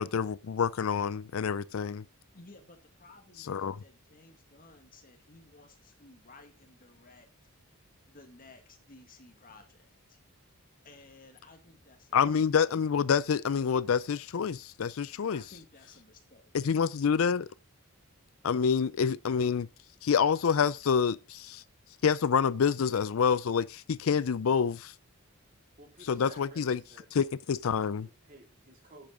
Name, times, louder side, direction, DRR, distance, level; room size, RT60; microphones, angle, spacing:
voice 1, 0.0-2.0 3.5-3.8 12.1-15.4 16.5-17.5 18.4-19.7 20.0-21.6 22.0-24.9 26.1-26.8 27.2-28.1, left 6 dB, 70° left, 0.4 m, -27 dB
voice 2, 2.3-7.3 8.1-10.2 10.8-12.3 15.1-16.5, left 2 dB, 40° left, 2.0 m, -56 dB
voice 3, 25.8-27.1 27.9-29.1, right 2 dB, 40° right, 4.0 m, -54 dB
10.5 x 8.8 x 3.8 m
head